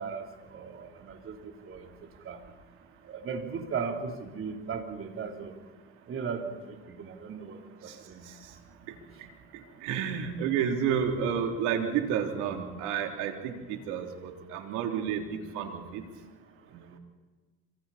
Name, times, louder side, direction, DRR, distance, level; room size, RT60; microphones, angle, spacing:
voice 1, 0.0-1.9 2.2-2.4 3.1-5.6 6.1-8.3, right 5 dB, 45° right, 3 dB, 3.6 m, -37 dB
voice 2, 8.9-16.1 16.7-16.9, right 8 dB, 85° right, 3 dB, 3.3 m, -31 dB
27.0 x 25.5 x 4.3 m, 1.3 s
cardioid pair, 100°, 29 cm